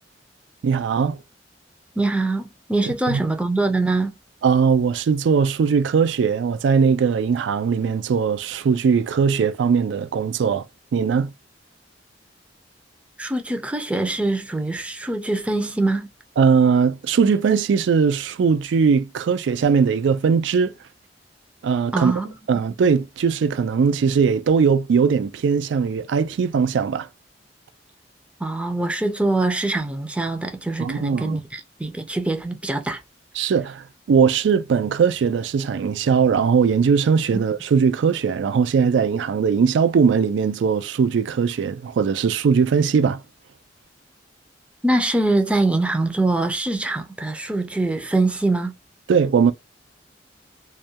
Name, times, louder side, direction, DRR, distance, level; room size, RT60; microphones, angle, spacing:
voice 1, 0.6-1.2 3.1-3.2 4.4-10.6 10.9-11.3 16.4-20.7 21.6-22.1 22.5-27.1 30.8-31.4 33.4-43.2 49.1-49.5, right 6 dB, 80° right, 0.3 m, -20 dB
voice 2, 2.0-4.1 13.2-16.1 21.9-22.3 28.4-33.0 37.3-37.4 44.8-48.7, right 2 dB, 5° right, 0.4 m, -23 dB
2.3 x 2.2 x 2.7 m
head